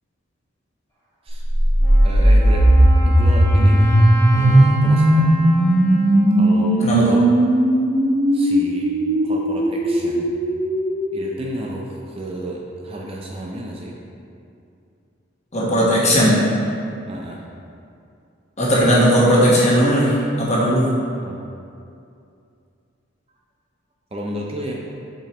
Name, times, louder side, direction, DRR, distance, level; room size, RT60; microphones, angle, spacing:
sound 1, 1.4-11.3, right 1 dB, 80° right, 1.1 m, -16 dB
Wind instrument woodwind instrument, 1.8-7.5, right 1 dB, 15° left, 1.5 m, -32 dB
voice 1, 2.0-2.6 3.1-4.0 4.3-5.4 6.4-7.3 8.3-8.9 9.2-10.3 11.1-13.9 17.1-17.4 21.2-21.5 24.1-24.7, right 1 dB, 30° right, -2 dB, 0.5 m, -32 dB
voice 2, 6.8-7.1 15.5-16.3 18.6-20.9, equal, 35° left, -5 dB, 1.2 m, -16 dB
7.4 x 5.0 x 3.0 m, 2.5 s
head